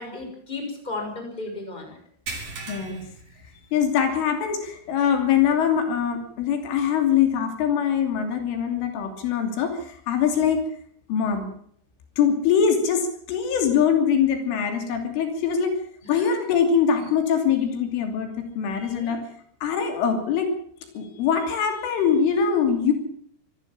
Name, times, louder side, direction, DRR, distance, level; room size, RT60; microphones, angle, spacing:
voice 1, 0.0-2.0 16.0-16.3 18.9-19.2, left 3 dB, 10° left, 2 dB, 5.6 m, -34 dB
sound 1, 2.3-4.1 4.5-4.7 5.2-5.3 6.9-7.0, right 3 dB, 50° right, 6.2 m, -38 dB
voice 2, 2.7-3.0 3.7-10.6 11.1-11.5 12.2-15.7 16.1-19.2 19.6-20.5 21.0-22.9, left 7 dB, 80° left, 5 dB, 5.4 m, -23 dB
25.5 x 14.5 x 7.4 m, 0.64 s
omnidirectional pair, 5.6 m